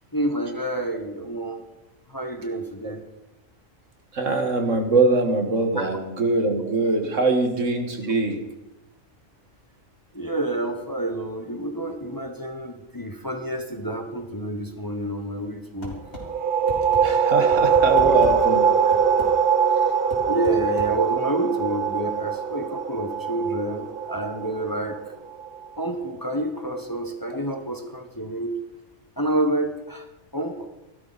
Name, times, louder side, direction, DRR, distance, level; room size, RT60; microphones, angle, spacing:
voice 1, 0.1-1.6 2.1-3.0 5.7-5.9 10.1-16.0 20.3-25.0 25.8-28.6 29.2-30.1 30.3-30.7, right 1 dB, 20° left, 5 dB, 1.0 m, -28 dB
voice 2, 4.1-8.4 17.0-18.6 27.3-27.5, right 3 dB, 75° right, 4 dB, 2.0 m, -22 dB
sound 1, 15.8-16.3 16.7-17.0 17.5-18.4 18.9-19.3 20.1-20.9, left 2 dB, 60° left, 3.7 m, -36 dB
sound 2, 16.1-25.6, right 7 dB, 50° right, 0.8 m, -22 dB
16.0 x 12.5 x 4.1 m, 0.99 s
omnidirectional pair, 1.3 m